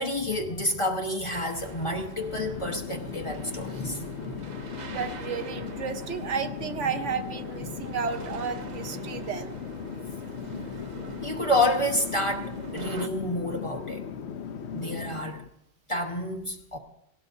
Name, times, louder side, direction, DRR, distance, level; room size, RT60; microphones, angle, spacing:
voice 1, 0.0-4.5 6.8-6.9 7.6-7.8 11.2-14.0 14.7-15.4 15.9-16.8, left 1 dB, 25° left, 2 dB, 1.2 m, -29 dB
sound 1, 1.3-13.1, right 4 dB, 45° right, 0.7 m, -44 dB
Chatter / Fixed-wing aircraft airplane, 2.1-15.5, left 7 dB, 60° left, 0.9 m, -38 dB
voice 2, 4.9-9.6, right 6 dB, 70° right, 7 dB, 1.1 m, -32 dB
18.0 x 17.5 x 2.7 m, 0.80 s
omnidirectional pair, 1.3 m